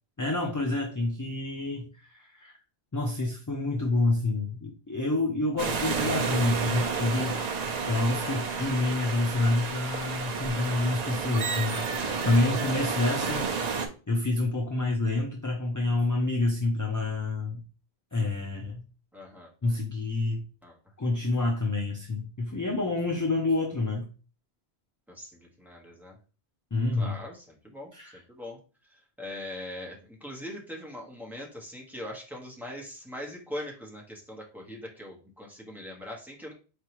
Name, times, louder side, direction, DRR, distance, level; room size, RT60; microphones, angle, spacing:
voice 1, 0.2-2.5 2.9-7.4 7.9-11.8 12.2-13.5 14.1-17.6 18.1-18.8 19.6-20.4 21.0-24.1 26.7-27.1 27.9-28.2, left 2 dB, 25° left, 0 dB, 0.5 m, -28 dB
sound 1, 5.6-13.9, right 5 dB, 50° right, 0.6 m, -31 dB
voice 2, 12.3-12.6 13.1-13.3 19.1-19.5 20.6-20.7 25.1-26.2 27.0-28.6 28.9-36.5, left 1 dB, ahead, -2 dB, 1.1 m, -41 dB
4.6 x 3.3 x 3.0 m, 0.35 s
omnidirectional pair, 1.1 m